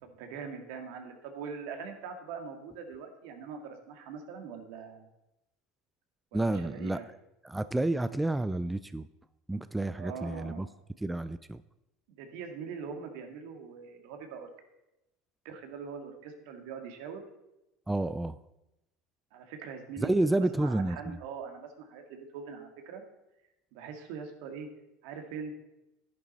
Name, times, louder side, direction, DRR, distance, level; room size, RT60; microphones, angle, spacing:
voice 1, 0.0-5.1 6.3-7.1 9.9-10.7 12.1-14.5 15.4-17.2 19.3-20.1 20.6-23.0 23.7-24.7 25.0-25.5, right 6 dB, 70° right, 5 dB, 2.1 m, -42 dB
voice 2, 6.3-7.0 7.4-9.1 9.5-10.7 11.0-11.6 17.9-18.4 20.0-21.2, right 2 dB, 10° right, 13 dB, 0.4 m, -30 dB
11.0 x 10.5 x 4.2 m, 0.91 s
supercardioid pair, 110°, 0 cm